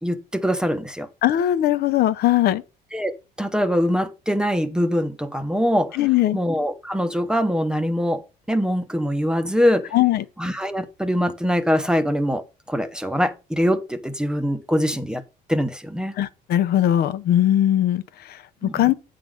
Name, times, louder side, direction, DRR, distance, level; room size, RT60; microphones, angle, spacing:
voice 1, 0.0-1.1 2.9-3.1 3.4-6.0 6.3-8.2 8.5-9.9 10.4-15.2 15.5-16.1 18.6-18.9, equal, 5° right, 0.8 m, -23 dB
voice 2, 1.2-2.6 5.9-6.4 9.9-10.2 16.1-18.9, left 12 dB, 70° left, 0.8 m, -20 dB
8.5 x 3.9 x 6.4 m
cardioid pair, 110°, 17 cm